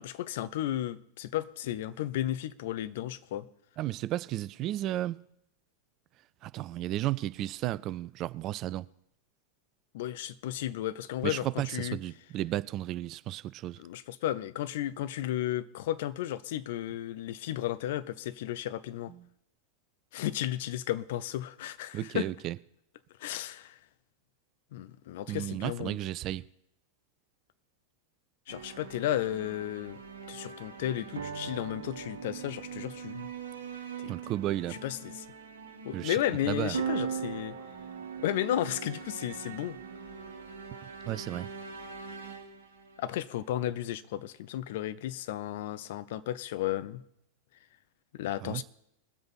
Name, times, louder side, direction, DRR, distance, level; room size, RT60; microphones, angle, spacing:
voice 1, 0.0-3.5 9.9-12.0 13.8-19.1 20.1-22.3 23.2-23.8 24.7-26.0 28.5-30.0 30.3-33.3 34.0-34.1 34.7-35.2 35.8-37.6 38.2-39.8 43.0-47.0 48.2-48.6, left 13 dB, 55° left, 0.6 m, -33 dB
voice 2, 3.8-5.2 6.4-8.9 11.2-13.8 21.9-22.6 25.3-26.4 34.1-34.8 35.9-36.2 36.5-36.8 41.1-41.5 48.4-48.6, right 14 dB, 35° right, 0.4 m, -33 dB
Sad Music, 28.5-43.8, right 6 dB, 70° right, 1.4 m, -41 dB
21.0 x 7.7 x 4.1 m
figure-of-eight pair, 90°, 0 cm